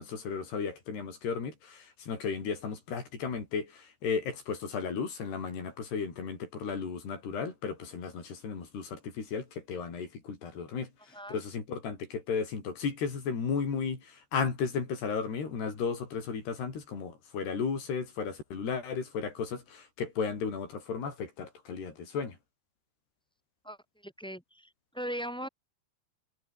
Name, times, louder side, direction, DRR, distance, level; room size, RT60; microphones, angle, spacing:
voice 1, 0.0-10.9 11.3-22.4, left 5 dB, 90° left, 7.6 m, -34 dB
voice 2, 24.0-25.5, equal, ahead, 6.4 m, -39 dB
omnidirectional pair, 4.6 m